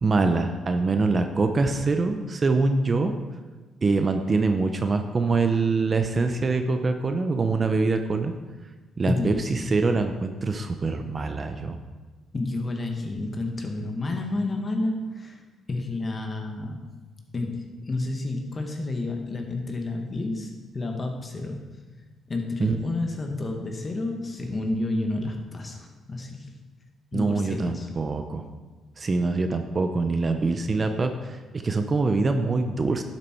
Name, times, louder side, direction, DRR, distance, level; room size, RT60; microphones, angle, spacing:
voice 1, 0.0-3.1 3.8-8.3 9.0-11.8 22.6-22.8 27.1-28.4 29.0-31.4 31.6-33.0, right 3 dB, 35° right, 7 dB, 0.9 m, -24 dB
voice 2, 9.1-9.7 12.3-15.4 15.7-16.8 17.3-20.5 20.7-21.8 22.3-26.5 27.1-27.9, left 2 dB, 35° left, 3 dB, 1.8 m, -30 dB
11.5 x 7.6 x 4.6 m, 1.3 s
cardioid pair, 90°, 0 cm